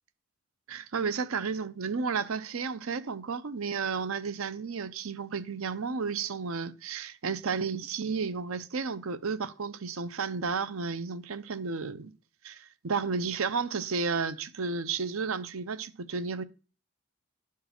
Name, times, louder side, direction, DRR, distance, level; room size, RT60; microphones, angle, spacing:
voice 1, 0.7-12.1 12.4-16.4, right 5 dB, 80° right, 0.7 m, -32 dB
11.0 x 4.7 x 5.9 m
head